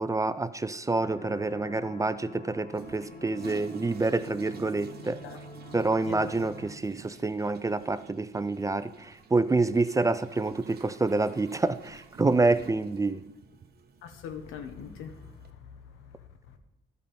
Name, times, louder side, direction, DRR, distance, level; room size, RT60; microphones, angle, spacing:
voice 1, 0.0-5.2 5.7-13.2, right 3 dB, 15° right, 0.4 m, -27 dB
sound 1, 0.9-6.7, left 1 dB, 40° left, 3.9 m, -47 dB
Toilet flush, 2.7-15.5, right 6 dB, 55° right, 0.9 m, -50 dB
voice 2, 14.0-16.6, left 7 dB, 90° left, 1.0 m, -43 dB
12.0 x 5.4 x 5.2 m
cardioid pair, 90°, 20 cm